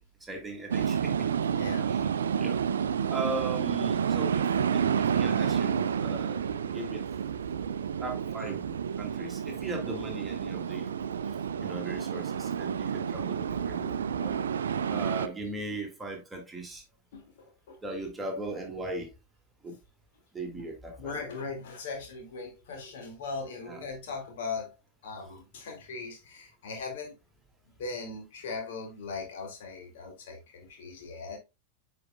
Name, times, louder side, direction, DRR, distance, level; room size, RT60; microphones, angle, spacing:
voice 1, 0.3-1.3 1.8-2.1 2.4-2.6 3.1-6.4 6.7-7.0 8.0-8.7 9.0-10.9 11.6-14.0 14.9-16.8 17.8-19.1 19.6-19.7 20.3-21.2 23.7-23.8, right 2 dB, 10° right, 2.1 m, -38 dB
sound 1, 0.7-15.3, right 7 dB, 65° right, 0.4 m, -30 dB
voice 2, 1.5-1.9 8.4-8.8 9.8-10.1 14.2-14.9 15.7-15.8 17.1-17.8 20.5-20.6 21.0-24.7 25.0-27.1 27.8-31.4, left 4 dB, 55° left, 2.2 m, -39 dB
9.4 x 5.0 x 2.3 m
figure-of-eight pair, 90°, 0 cm